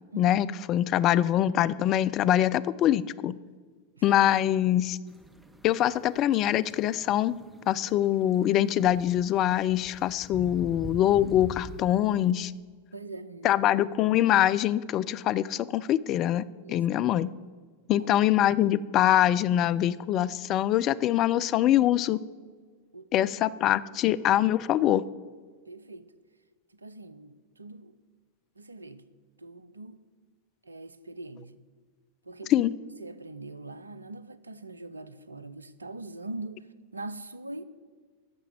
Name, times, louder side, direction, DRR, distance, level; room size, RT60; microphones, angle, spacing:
voice 1, 0.2-3.4 4.0-5.0 5.6-7.4 7.7-12.5 13.4-17.3 17.9-22.2 23.1-25.0 32.5-32.7, left 12 dB, 35° left, 0.3 m, -24 dB
sound 1, 5.1-12.3, right 1 dB, 5° right, 0.8 m, -46 dB
voice 2, 12.9-13.5 16.6-16.8 17.9-18.2 22.9-23.3 23.9-24.2 25.7-26.1 26.7-28.0 28.6-29.0 29.4-30.0 30.6-31.5 32.3-32.7 33.0-36.7 36.9-37.6, right 2 dB, 80° right, 0.5 m, -42 dB
10.5 x 6.8 x 7.8 m
figure-of-eight pair, 90°, 0 cm